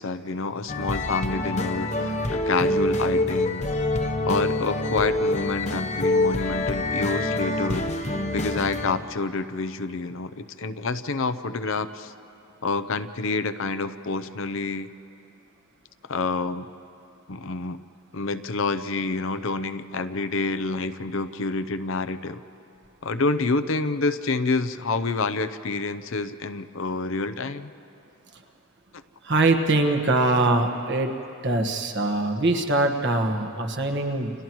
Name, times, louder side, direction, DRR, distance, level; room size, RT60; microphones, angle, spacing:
voice 1, 0.0-3.7 4.3-7.9 8.3-12.1 12.6-14.9 16.1-16.7 17.3-17.8 18.1-22.4 23.0-27.7, left 3 dB, 60° left, 11 dB, 0.6 m, -28 dB
sound 1, 0.7-9.0, left 2 dB, 30° left, 0.9 m, -26 dB
voice 2, 29.2-31.1 31.4-34.4, right 2 dB, 55° right, 4 dB, 1.4 m, -23 dB
30.0 x 29.5 x 3.1 m, 2.6 s
head